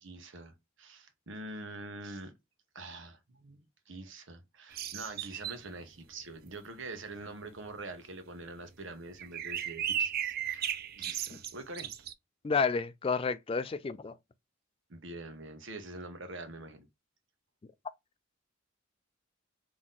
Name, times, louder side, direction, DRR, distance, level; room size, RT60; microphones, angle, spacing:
voice 1, 0.0-2.3 2.7-11.9 14.9-16.9, right 2 dB, 65° right, 1.0 m, -45 dB
sound 1, 4.7-5.7 9.2-12.1, right 10 dB, 50° right, 0.4 m, -35 dB
voice 2, 12.4-14.1, left 5 dB, 25° left, 0.3 m, -30 dB
3.8 x 3.0 x 3.8 m
head